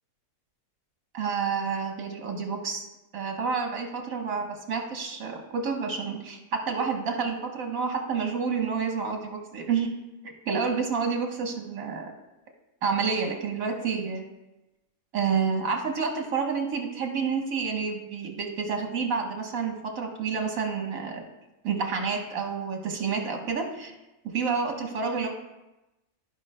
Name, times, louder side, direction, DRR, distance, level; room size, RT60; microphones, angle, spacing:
voice 1, 1.1-2.8 3.1-9.9 10.4-12.1 12.8-14.2 15.1-21.2 21.6-23.9 24.3-25.3, right 5 dB, 80° right, 2 dB, 1.6 m, -29 dB
15.5 x 5.4 x 2.2 m, 1.0 s
omnidirectional pair, 1.4 m